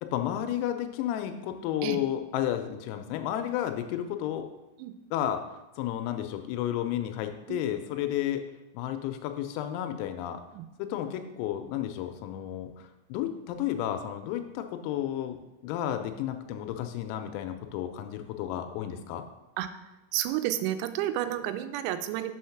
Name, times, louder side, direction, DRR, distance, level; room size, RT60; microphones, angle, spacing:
voice 1, 0.0-4.5 5.1-5.4 5.8-8.4 8.7-10.4 10.8-15.4 15.6-19.2, left 11 dB, 85° left, 7 dB, 3.3 m, -32 dB
voice 2, 20.1-22.3, right 13 dB, 90° right, 9 dB, 3.4 m, -30 dB
7.2 x 6.3 x 5.7 m, 0.99 s
omnidirectional pair, 6.0 m